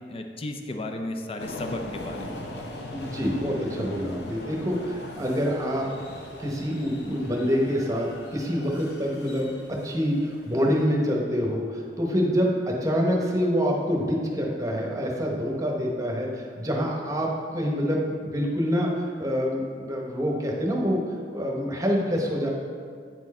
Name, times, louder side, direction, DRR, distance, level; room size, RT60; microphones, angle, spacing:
voice 1, 0.1-2.5, left 1 dB, 35° left, 4 dB, 0.5 m, -34 dB
sound 1, 1.4-10.9, left 1 dB, 70° left, 0.8 m, -40 dB
voice 2, 2.9-5.9 6.4-21.0 21.3-22.5, equal, 20° right, -1 dB, 1.0 m, -26 dB
8.9 x 4.5 x 4.2 m, 2.2 s
head